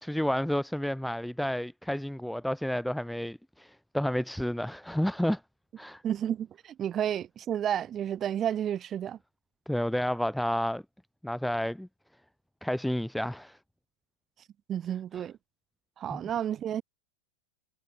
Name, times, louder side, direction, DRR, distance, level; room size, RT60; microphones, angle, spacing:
voice 1, 0.0-5.4 5.8-6.0 9.7-10.8 11.2-11.9 12.6-13.6 16.1-16.2, equal, ahead, 1.8 m, -30 dB
voice 2, 6.0-9.2 14.7-15.3 16.0-16.8, right 10 dB, 20° right, 5.1 m, -31 dB
supercardioid pair, 170°, 0 cm